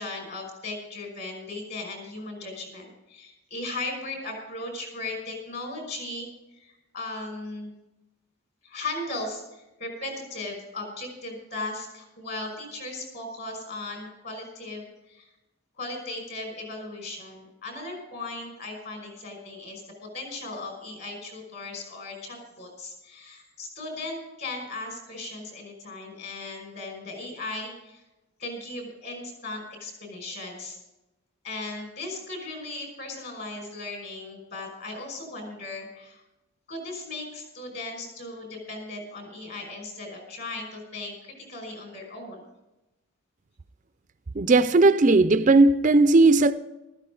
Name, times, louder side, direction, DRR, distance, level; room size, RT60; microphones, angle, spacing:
voice 1, 0.0-6.3 6.5-7.7 8.6-15.3 15.7-28.0 28.4-30.8 31.4-36.2 36.7-42.4, left 2 dB, 50° left, 5.5 m, -37 dB
voice 2, 44.4-46.5, right 3 dB, 35° right, 0.4 m, -17 dB
14.5 x 14.0 x 3.8 m
head